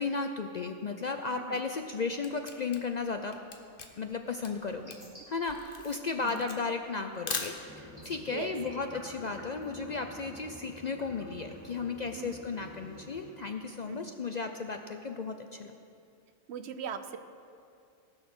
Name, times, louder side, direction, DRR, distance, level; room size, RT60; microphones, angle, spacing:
voice 1, 0.0-3.3 4.0-5.0 5.3-15.8, left 4 dB, 65° left, 5 dB, 0.4 m, -35 dB
Camera, 1.8-8.0, left 4 dB, 45° left, 1.1 m, -41 dB
sound 1, 4.4-13.4, equal, 15° right, 3.6 m, -58 dB
sound 2, 7.6-13.3, equal, 5° left, 2.3 m, -48 dB
voice 2, 16.5-17.2, right 7 dB, 60° right, 9 dB, 0.9 m, -39 dB
18.5 x 6.4 x 6.1 m, 2.4 s
omnidirectional pair, 1.4 m